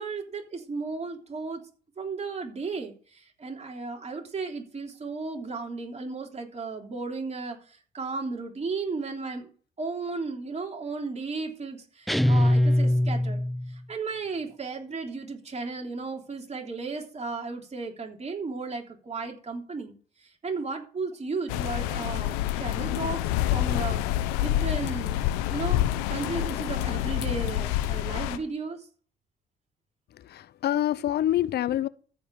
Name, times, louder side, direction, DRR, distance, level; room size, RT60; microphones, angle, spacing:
voice 1, 0.0-1.6 2.0-9.5 9.8-19.9 20.2-25.2 25.5-25.8 26.1-28.9, right 4 dB, 35° right, 3.4 m, -35 dB
sound 1, 12.1-13.8, left 1 dB, ahead, 0.5 m, -22 dB
sound 2, 21.5-28.4, left 13 dB, 85° left, 0.9 m, -27 dB
voice 2, 30.1-31.9, left 12 dB, 55° left, 0.7 m, -26 dB
14.0 x 5.3 x 6.4 m
hypercardioid pair, 60°, 20 cm